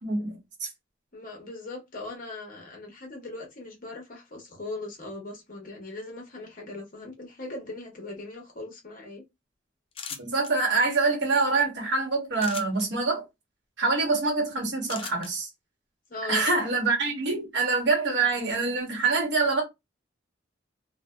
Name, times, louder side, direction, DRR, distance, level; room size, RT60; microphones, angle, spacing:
voice 1, 0.0-0.7 10.2-13.2 13.8-15.5 16.3-19.6, right 3 dB, 65° right, 1.0 m, -25 dB
voice 2, 1.1-9.2 16.1-16.5, left 2 dB, 45° left, 0.9 m, -39 dB
sound 1, 9.9-10.5 12.4-12.9 14.9-15.3, left 7 dB, 30° left, 0.3 m, -38 dB
2.6 x 2.1 x 2.2 m
head